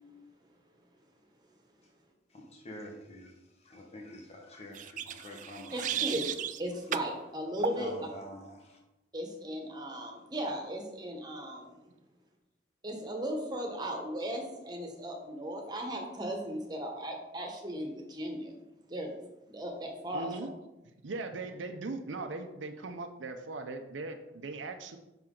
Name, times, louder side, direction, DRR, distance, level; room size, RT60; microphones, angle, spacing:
voice 1, 2.3-3.3 3.6-6.1 7.8-8.8, left 1 dB, 35° left, 0 dB, 1.0 m, -46 dB
sound 1, 4.7-6.6 6.9-7.1 7.6-7.8, right 9 dB, 45° right, 0.3 m, -35 dB
voice 2, 5.7-6.3 6.6-8.1 9.1-11.9 12.8-18.5 18.9-19.1 19.5-20.3, equal, 25° right, 1 dB, 1.1 m, -36 dB
voice 3, 20.1-20.5 21.0-25.0, right 3 dB, 90° right, 6 dB, 0.6 m, -39 dB
5.9 x 5.6 x 3.8 m, 0.97 s
head